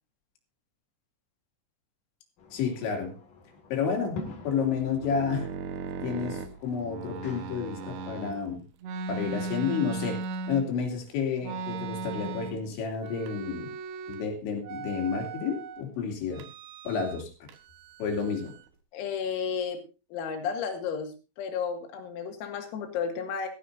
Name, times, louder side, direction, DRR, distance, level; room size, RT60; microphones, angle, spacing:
sound 1, 2.4-8.4, left 3 dB, 50° left, 3.1 m, -46 dB
voice 1, 2.5-3.1 3.7-5.5 6.0-8.6 9.1-10.2 10.5-13.7 14.1-16.4 16.8-17.3 18.0-18.5, left 6 dB, 65° left, 3 dB, 4.9 m, -30 dB
sound 2, 4.8-8.4 8.8-10.9 11.4-12.7 13.0-14.3 14.6-15.8 16.3-17.2 17.5-18.7, right 4 dB, 65° right, 2.8 m, -37 dB
voice 2, 18.9-19.8 20.1-23.5, left 6 dB, 90° left, 5 dB, 4.8 m, -32 dB
17.5 x 14.5 x 2.7 m, 0.31 s
omnidirectional pair, 5.9 m